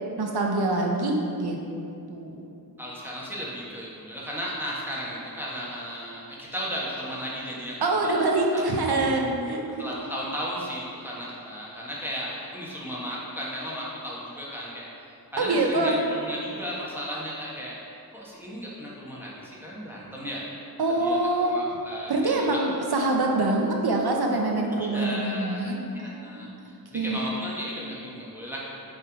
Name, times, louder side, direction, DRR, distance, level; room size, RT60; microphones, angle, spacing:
voice 1, 0.2-1.6 2.1-2.5 7.8-9.6 15.4-16.0 20.8-21.5 22.1-26.7 26.9-27.2, right 2 dB, 85° right, 1 dB, 0.8 m, -25 dB
voice 2, 2.8-8.6 8.9-9.0 9.8-14.9 15.3-17.8 18.1-20.4 21.0-22.5 24.8-25.7 26.0-26.5 26.9-28.7, equal, 5° right, -6 dB, 1.4 m, -35 dB
6.5 x 3.5 x 4.7 m, 2.6 s
wide cardioid pair, 55°, 37 cm